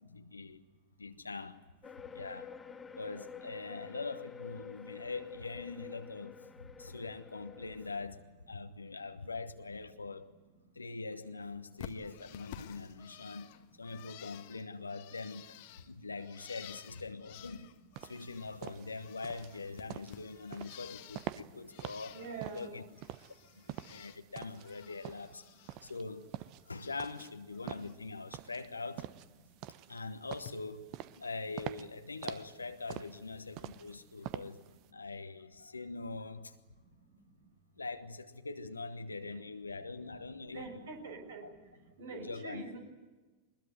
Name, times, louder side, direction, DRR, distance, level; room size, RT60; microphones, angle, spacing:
voice 1, 0.0-0.6 1.0-2.5 3.0-10.3 10.7-13.5 13.8-15.6 15.9-17.7 18.0-22.2 22.5-22.8 23.7-25.4 25.8-26.3 26.7-29.1 29.9-34.6 34.9-36.5 37.8-40.8 41.4-41.5 42.1-42.6, left 3 dB, 80° left, 1.2 m, -43 dB
sound 1, 1.8-8.0, left 7 dB, 15° left, 1.2 m, -49 dB
Bird, 11.8-18.6 18.8-21.4 21.7-22.5 22.9-24.2 24.5-25.8 26.1-27.1 27.5-27.9 29.2-29.3 30.3-30.5, left 13 dB, 50° left, 1.3 m, -53 dB
sound 2, 18.0-34.9, right 14 dB, 40° right, 0.9 m, -46 dB
voice 2, 22.1-22.8 39.1-39.2 40.5-41.5 42.0-42.8, right 4 dB, 65° right, 6.5 m, -44 dB
23.0 x 21.0 x 9.5 m
figure-of-eight pair, 90°, 0 cm